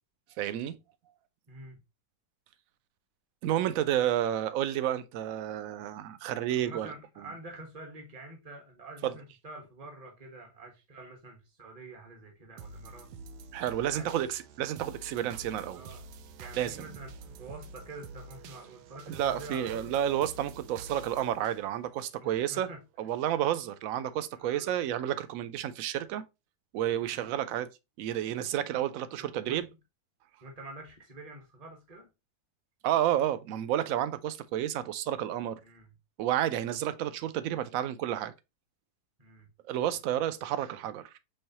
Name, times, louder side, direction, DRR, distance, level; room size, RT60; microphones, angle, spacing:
voice 1, 0.4-0.8 3.4-6.9 9.0-9.1 13.5-15.8 16.6-16.9 19.1-22.7 23.0-26.2 26.7-27.7 28.0-29.7 32.8-35.6 36.2-38.3 39.7-41.1, right 11 dB, 70° right, 0.9 m, -30 dB
voice 2, 1.5-1.8 3.9-4.1 6.6-13.1 13.9-14.2 15.7-16.0 16.4-19.9 22.2-22.8 24.4-24.7 26.9-27.2 29.1-29.6 30.4-32.1 35.6-35.9 39.2-39.5, right 2 dB, 25° right, 1.1 m, -47 dB
sound 1, 12.6-22.6 23.1-23.2, right 4 dB, 90° right, 1.2 m, -48 dB
5.4 x 3.5 x 2.8 m
omnidirectional pair, 1.7 m